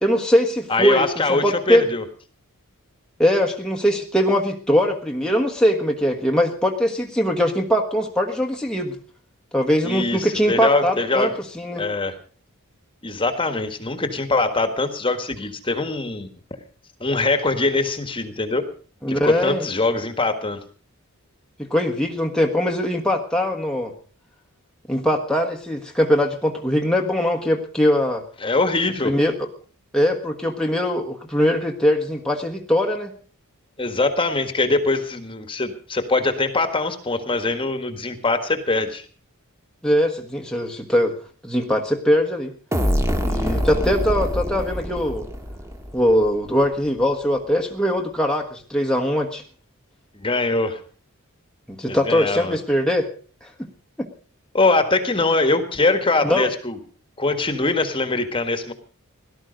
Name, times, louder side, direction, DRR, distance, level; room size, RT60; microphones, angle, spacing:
voice 1, 0.0-1.8 3.2-9.0 9.5-11.8 19.0-19.7 21.6-23.9 24.9-28.2 29.0-29.3 29.9-33.1 39.8-41.1 41.4-42.5 43.2-45.3 45.9-49.4 51.7-53.1 53.4-53.5 54.0-54.1 56.2-56.5, equal, 5° left, 1 dB, 1.4 m, -21 dB
voice 2, 0.7-2.0 9.8-11.3 11.8-12.2 13.0-16.3 17.0-18.7 19.1-20.6 28.4-29.2 33.8-39.1 50.2-50.8 51.9-52.6 54.5-56.8 57.2-58.7, left 3 dB, 25° left, 9 dB, 1.6 m, -22 dB
sound 1, 42.7-46.4, equal, 15° right, 1.6 m, -25 dB
17.5 x 13.0 x 5.2 m, 0.42 s
head